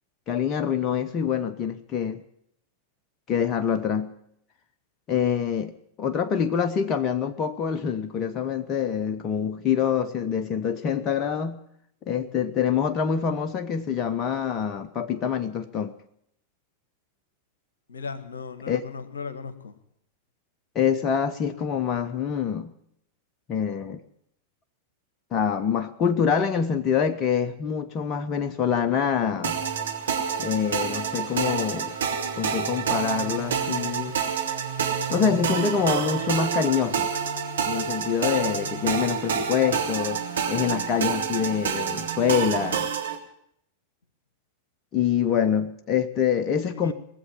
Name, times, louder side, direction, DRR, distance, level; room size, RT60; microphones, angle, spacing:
voice 1, 0.3-2.2 3.3-4.1 5.1-11.6 12.1-15.9 18.7-18.8 20.7-22.7 23.5-24.0 25.3-29.6 30.4-32.0 32.4-34.2 35.1-37.1 37.7-42.9 44.9-46.9, left 7 dB, 30° left, 9 dB, 0.7 m, -25 dB
voice 2, 17.9-19.7 46.7-46.9, left 5 dB, 70° left, 12 dB, 1.1 m, -36 dB
sound 1, 29.4-43.2, right 7 dB, 65° right, 1.6 m, -28 dB
19.5 x 7.7 x 8.9 m, 0.74 s
figure-of-eight pair, 90°, 0 cm